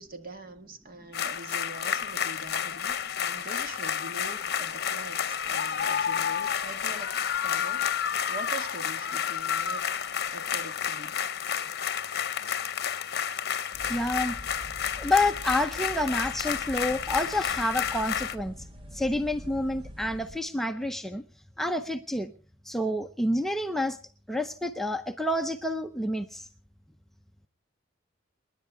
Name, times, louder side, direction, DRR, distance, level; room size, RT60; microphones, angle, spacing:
voice 1, 0.0-7.1 7.4-11.2, right 2 dB, 45° right, 1.7 m, -44 dB
sound 1, 1.1-18.4, left 8 dB, 55° left, 0.9 m, -30 dB
sound 2, 13.7-20.4, equal, 25° right, 1.0 m, -44 dB
voice 2, 13.9-14.4 15.0-18.7 18.9-21.2 21.6-22.3 22.7-24.0 24.3-26.5, left 1 dB, ahead, 0.6 m, -28 dB
28.0 x 10.5 x 3.5 m
head